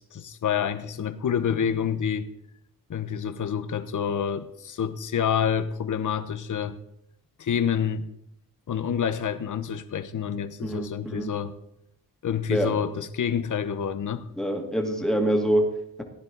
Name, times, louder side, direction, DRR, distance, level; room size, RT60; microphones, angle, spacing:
voice 1, 0.0-2.3 2.9-6.8 7.4-8.1 8.7-11.5 12.2-14.2, left 8 dB, 55° left, 11 dB, 0.9 m, -28 dB
voice 2, 10.6-11.4 12.5-12.8 14.4-16.0, right 1 dB, ahead, 2 dB, 2.2 m, -26 dB
15.5 x 10.5 x 3.9 m, 0.78 s
cardioid pair, 95°, 36 cm